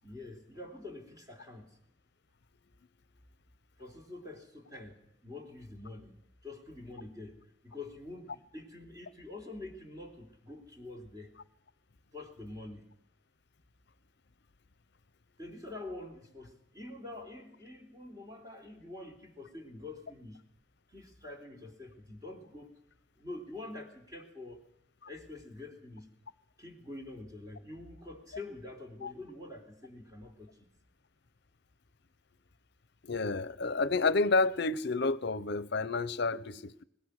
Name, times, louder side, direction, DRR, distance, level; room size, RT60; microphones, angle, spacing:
voice 1, 0.0-1.8 3.8-7.4 7.6-11.3 12.1-12.9 15.4-20.4 20.9-22.8 23.2-24.7 25.1-26.1 26.6-30.7, left 2 dB, 20° right, 3.4 m, -46 dB
voice 2, 33.0-36.8, left 3 dB, 60° left, 0.8 m, -30 dB
22.0 x 20.5 x 6.5 m
head